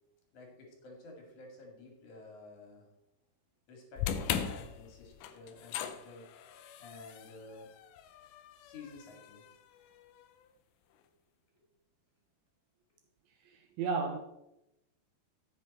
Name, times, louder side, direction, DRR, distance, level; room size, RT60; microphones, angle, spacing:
voice 1, 0.3-2.9 3.7-6.3 6.8-7.7 8.6-9.5, left 3 dB, 50° left, 3.3 m, -51 dB
sound 1, 4.0-10.2, left 9 dB, 80° left, 2.2 m, -40 dB
voice 2, 13.5-14.2, right 4 dB, 80° right, 2.2 m, -33 dB
12.5 x 8.2 x 4.2 m
omnidirectional pair, 5.1 m